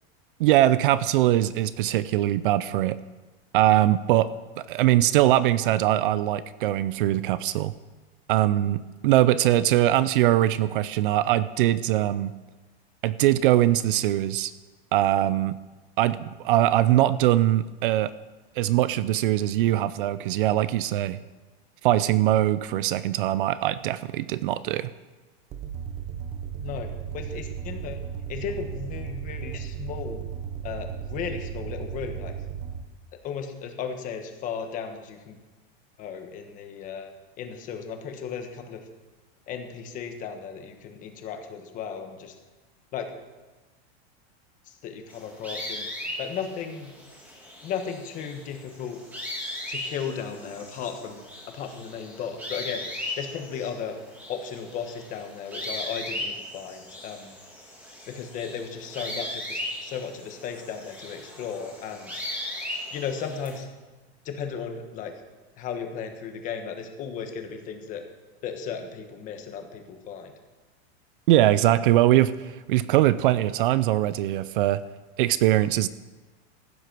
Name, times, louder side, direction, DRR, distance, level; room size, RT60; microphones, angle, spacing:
voice 1, 0.4-3.0 3.5-4.3 4.6-7.7 8.3-12.3 13.0-14.5 14.9-15.6 16.0-18.1 18.6-21.2 21.8-24.9 71.3-74.8 75.2-75.9, right 14 dB, 55° right, 16 dB, 0.5 m, -22 dB
sound 1, 25.5-32.8, right 8 dB, 20° right, 0.8 m, -35 dB
voice 2, 26.6-28.0 28.3-30.2 30.6-32.3 33.2-35.4 36.0-37.1 37.4-38.8 39.5-42.3 42.9-43.1 44.7-45.9 46.2-46.9 47.6-49.0 49.7-51.2 51.4-52.9 53.2-54.0 54.3-57.3 58.1-62.1 62.9-63.7 64.2-65.1 65.6-68.0 68.4-70.3, left 7 dB, 25° left, 6 dB, 1.2 m, -35 dB
sound 2, 45.1-63.6, left 1 dB, 5° right, 2.4 m, -38 dB
15.0 x 7.8 x 6.0 m, 1.2 s
supercardioid pair, 170°, 32 cm